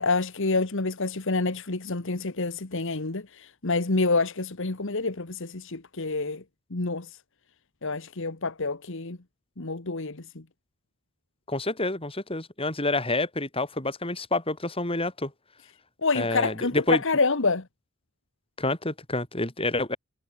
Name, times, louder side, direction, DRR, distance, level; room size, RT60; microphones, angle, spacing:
voice 1, 0.0-6.4 6.7-7.2 7.8-9.2 9.6-10.4 16.0-17.6, left 3 dB, 60° left, 1.5 m, -27 dB
voice 2, 11.5-15.3 16.2-17.0 18.6-20.0, left 2 dB, 25° left, 6.7 m, -28 dB
head